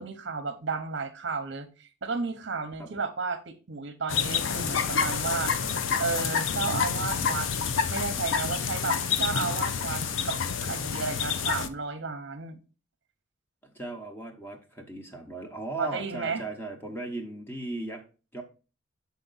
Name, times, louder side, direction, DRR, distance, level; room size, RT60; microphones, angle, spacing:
voice 1, 0.0-5.6 6.0-7.5 7.9-10.4 10.6-12.6 15.8-16.4, right 4 dB, 60° right, 7 dB, 0.7 m, -33 dB
sound 1, 4.1-11.7, left 6 dB, 70° left, 0.5 m, -28 dB
voice 2, 13.6-18.0 18.3-18.4, right 2 dB, 10° left, 3 dB, 0.9 m, -37 dB
7.1 x 4.2 x 4.0 m, 0.34 s
head